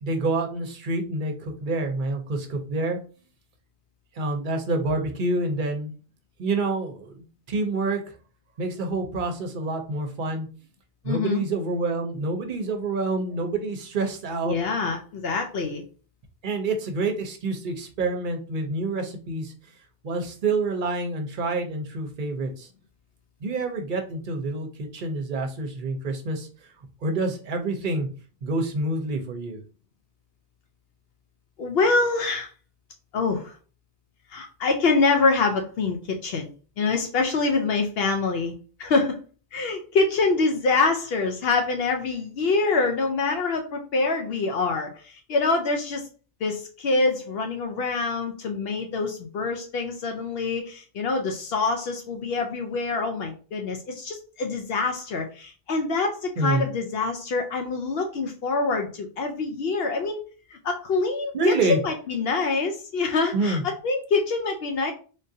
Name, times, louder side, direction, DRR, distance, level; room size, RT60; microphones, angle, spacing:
voice 1, 0.0-3.0 4.1-5.9 6.4-8.0 8.6-10.5 11.0-14.6 16.4-19.5 20.0-22.7 23.4-26.5 27.0-28.1 28.4-29.6 56.4-56.7 61.3-61.8 63.3-63.6, right 2 dB, 55° right, 4 dB, 0.8 m, -27 dB
voice 2, 11.0-11.4 14.5-15.8 31.6-32.5 33.1-33.5 34.3-36.5 36.8-38.5 38.8-39.2 39.5-46.0 46.4-60.2 60.5-63.6 63.8-64.9, left 3 dB, 70° left, 4 dB, 0.8 m, -25 dB
3.7 x 2.5 x 2.6 m, 0.37 s
omnidirectional pair, 1.1 m